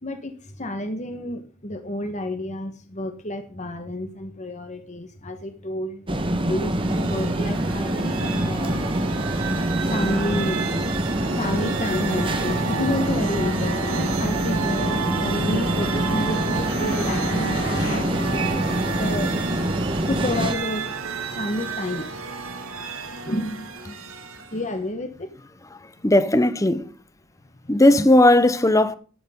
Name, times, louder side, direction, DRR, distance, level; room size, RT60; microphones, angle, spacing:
voice 1, 0.0-8.8 9.9-10.6 11.3-18.0 18.9-19.3 20.1-20.9 21.3-22.1 22.4-22.5 23.0-23.7 24.5-25.3, left 1 dB, 35° left, 1.4 m, -30 dB
sound 1, 6.1-20.5, right 1 dB, 25° right, 1.3 m, -25 dB
sound 2, 6.6-24.7, right 4 dB, 80° right, 2.2 m, -31 dB
Motorcycle, 11.7-23.7, left 2 dB, 55° left, 3.6 m, -40 dB
voice 2, 26.0-26.9 27.7-29.0, left 1 dB, 15° left, 0.9 m, -16 dB
12.5 x 11.5 x 3.8 m
head